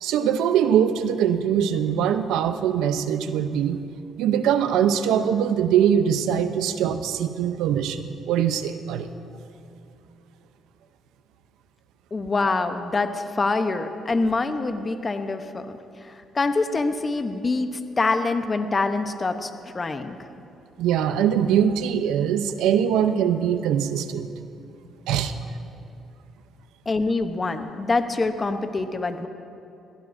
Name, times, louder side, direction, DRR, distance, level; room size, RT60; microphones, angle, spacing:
voice 1, 0.0-3.8 4.2-9.1 20.8-24.3 25.1-25.3, right 9 dB, 85° right, 10 dB, 0.7 m, -22 dB
voice 2, 12.1-15.8 16.0-20.2 26.9-29.3, left 3 dB, 30° left, 8 dB, 0.9 m, -25 dB
21.5 x 16.5 x 2.7 m, 2.6 s
cardioid pair, 80°, 0 cm